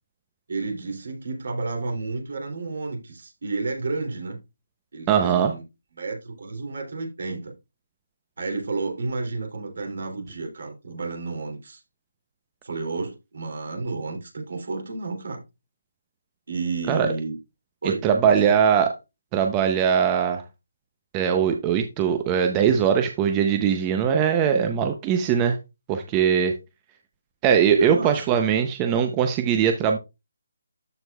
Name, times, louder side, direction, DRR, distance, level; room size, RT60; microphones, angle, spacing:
voice 1, 0.5-4.4 4.9-5.6 5.9-7.5 8.4-11.8 12.6-15.4 16.5-17.4 17.8-18.4 27.8-28.3, right 3 dB, 65° right, 2.8 m, -31 dB
voice 2, 5.1-5.5 16.9-17.1 18.0-18.9 19.3-20.4 21.1-25.6 25.9-26.5 27.4-30.0, right 8 dB, 15° right, 0.6 m, -21 dB
13.0 x 4.5 x 2.3 m
hypercardioid pair, 165°, 0 cm